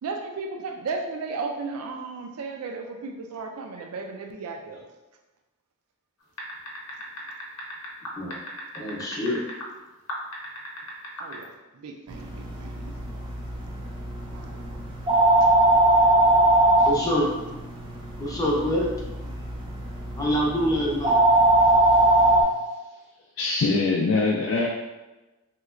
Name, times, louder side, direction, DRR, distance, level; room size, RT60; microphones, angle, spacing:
voice 1, 0.0-4.8 11.2-12.9 14.3-14.8, right 4 dB, 75° right, 4 dB, 0.3 m, -35 dB
sound 1, 6.4-9.7 10.1-11.4, left 1 dB, 80° left, 0.7 m, -36 dB
voice 2, 8.7-9.4 16.8-17.3 18.2-18.9 19.2-19.3 20.2-21.2, equal, 15° left, -3 dB, 0.6 m, -25 dB
sound 2, 12.1-22.4, right 2 dB, 25° right, 0.5 m, -22 dB
voice 3, 21.6-22.1 22.5-23.0 23.4-24.7, left 3 dB, 65° left, -2 dB, 0.3 m, -25 dB
3.1 x 2.9 x 2.4 m, 1.1 s
head